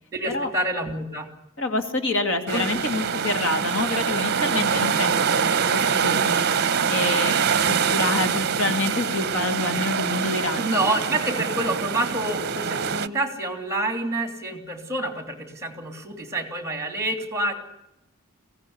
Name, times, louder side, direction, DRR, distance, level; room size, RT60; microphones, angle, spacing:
voice 1, 0.1-1.3 2.5-2.6 10.6-17.5, right 1 dB, 15° right, 6 dB, 3.1 m, -27 dB
voice 2, 1.6-6.5 6.9-7.4 7.7-10.8, left 2 dB, 60° left, 6 dB, 2.5 m, -27 dB
sound 1, 2.5-13.1, right 6 dB, 50° right, 0.7 m, -24 dB
22.5 x 16.5 x 9.7 m, 0.86 s
head